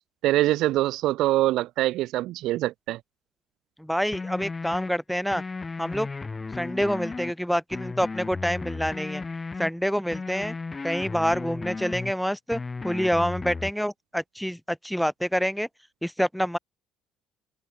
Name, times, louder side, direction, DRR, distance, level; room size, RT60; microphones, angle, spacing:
voice 1, 0.2-3.0, right 16 dB, 70° right, 0.7 m, -24 dB
voice 2, 3.8-5.4 5.8-6.1 6.5-9.2 9.6-10.5 10.8-15.7 16.0-16.6, equal, ahead, 2.6 m, -27 dB
sound 1, 4.1-4.9 5.3-7.3 7.7-9.7 10.1-12.1 12.5-13.7, left 4 dB, 20° left, 7.4 m, -35 dB
cardioid pair, 135°, 0 cm